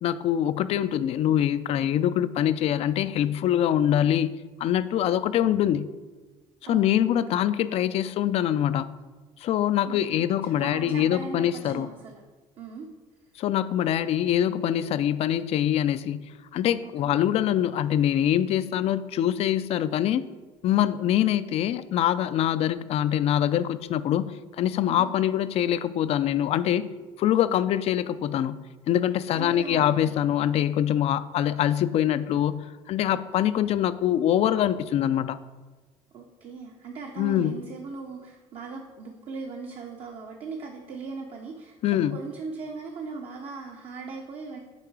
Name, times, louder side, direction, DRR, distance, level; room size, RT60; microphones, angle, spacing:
voice 1, 0.0-4.3 4.6-5.9 6.6-9.0 9.4-11.9 13.4-20.3 20.6-26.9 27.2-35.4 37.2-37.6 41.8-42.2, left 11 dB, 50° left, 15 dB, 0.4 m, -24 dB
voice 2, 6.7-7.4 9.9-12.2 12.6-12.9 16.8-17.1 24.9-25.1 29.3-30.1 36.1-41.8 42.1-44.6, right 4 dB, 55° right, 1 dB, 0.8 m, -39 dB
6.8 x 3.8 x 4.7 m, 1.3 s
cardioid pair, 105°, 13 cm